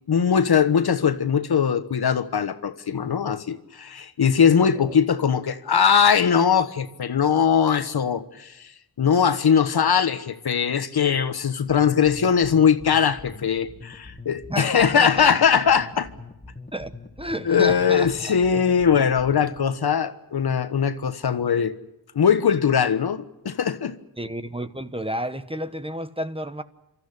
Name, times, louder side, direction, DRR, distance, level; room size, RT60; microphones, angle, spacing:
voice 1, 0.1-8.7 9.0-16.1 17.4-21.7 22.1-24.0, left 7 dB, 60° left, 1.3 m, -21 dB
sound 1, 12.1-19.7, left 3 dB, 20° left, 2.2 m, -43 dB
voice 2, 14.5-15.3 16.7-16.9 17.2-18.3 19.0-19.1 24.2-26.6, equal, 15° right, 1.1 m, -31 dB
28.5 x 13.0 x 10.0 m
cardioid pair, 75°, 43 cm